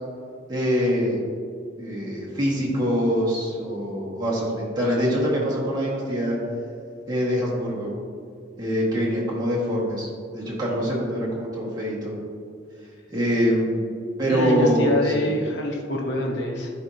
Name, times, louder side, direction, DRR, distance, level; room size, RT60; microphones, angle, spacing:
voice 1, 0.5-1.2 1.8-6.4 7.1-7.9 8.6-10.1 10.3-12.1 13.1-13.8 14.2-15.3, equal, 20° right, -6 dB, 1.6 m, -24 dB
voice 2, 14.3-16.7, left 1 dB, 65° left, -1 dB, 0.9 m, -25 dB
12.0 x 4.4 x 2.8 m, 2.3 s
head